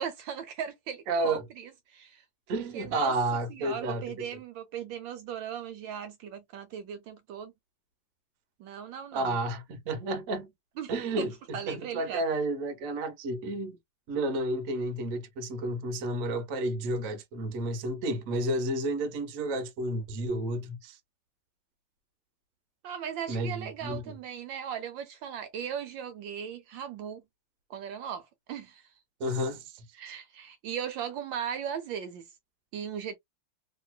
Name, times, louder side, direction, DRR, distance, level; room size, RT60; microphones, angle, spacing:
voice 1, 0.0-2.2 2.5-3.1 3.5-7.5 8.6-9.3 10.8-12.2 22.8-27.2 27.7-28.9 29.9-32.3 32.7-33.2, right 8 dB, 75° right, 1.2 m, -38 dB
voice 2, 1.1-1.4 2.5-4.0 9.1-10.5 10.9-13.8 14.1-21.0 23.3-24.0 29.2-30.1, right 1 dB, 55° right, 1.0 m, -31 dB
3.1 x 3.0 x 2.2 m
omnidirectional pair, 2.3 m